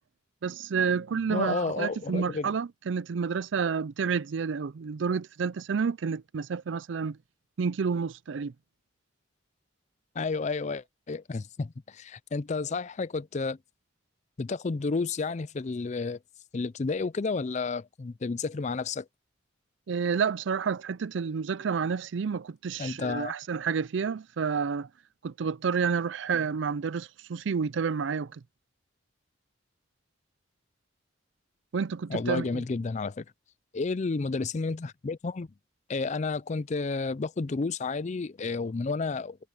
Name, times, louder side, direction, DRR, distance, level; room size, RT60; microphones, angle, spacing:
voice 1, 0.4-7.2 7.6-8.5 19.9-24.9 25.2-28.4 31.7-32.6, right 6 dB, 70° right, 0.4 m, -29 dB
voice 2, 1.3-2.5 10.2-13.6 14.4-16.2 16.5-19.1 22.8-23.3 32.1-33.3 33.7-35.5 35.9-39.4, left 4 dB, 35° left, 0.4 m, -31 dB
head